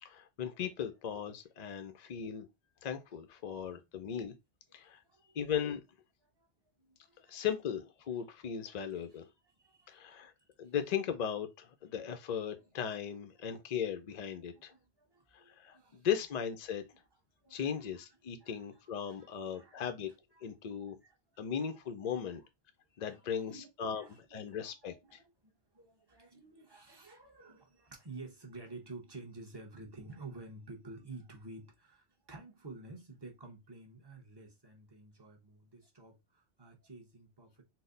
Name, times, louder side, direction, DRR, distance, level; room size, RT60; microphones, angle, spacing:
voice 1, 0.0-2.5 2.8-4.3 4.7-5.0 5.3-5.8 7.3-9.3 9.9-10.3 10.6-14.7 15.3-16.8 17.5-20.1 20.4-21.0 21.4-22.4 23.0-24.0 24.3-25.2, left 8 dB, 60° left, 0.4 m, -37 dB
voice 2, 4.7-5.4 6.4-6.5 6.8-7.4 8.7-9.0 9.4-10.7 13.3-13.6 14.4-16.1 16.9-17.0 17.4-21.7 22.1-22.5 23.0-37.6, right 3 dB, 25° right, 0.9 m, -52 dB
4.1 x 2.1 x 3.7 m
omnidirectional pair, 1.2 m